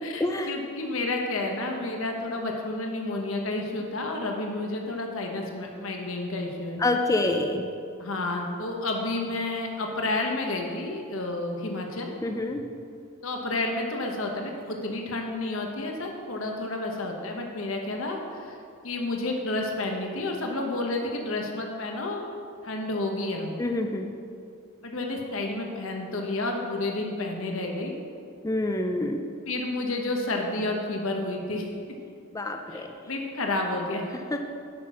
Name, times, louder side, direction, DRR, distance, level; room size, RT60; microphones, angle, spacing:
voice 1, 0.0-6.8 8.0-12.1 13.2-22.3 22.6-23.5 24.8-27.9 29.4-31.7 32.7-34.0, left 2 dB, 65° left, 2 dB, 1.0 m, -30 dB
voice 2, 6.8-7.6 12.2-12.6 23.6-24.1 28.4-29.2 32.3-32.9 34.3-34.4, left 2 dB, 15° left, 4 dB, 0.4 m, -26 dB
8.4 x 6.0 x 6.1 m, 2.4 s
head